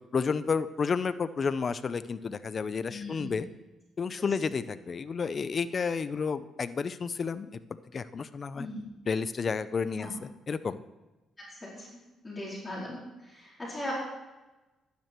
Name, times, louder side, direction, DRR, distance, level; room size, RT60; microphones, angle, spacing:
voice 1, 0.1-3.5 4.0-7.6 7.9-8.7 9.1-10.8, left 5 dB, 40° left, 14 dB, 0.6 m, -31 dB
voice 2, 2.9-3.3 8.6-8.8 10.0-10.1 11.6-11.9 12.2-13.0 13.3-13.9, left 1 dB, 20° left, -5 dB, 4.3 m, -38 dB
12.0 x 9.4 x 4.5 m, 1.1 s
cardioid pair, 90°, 0 cm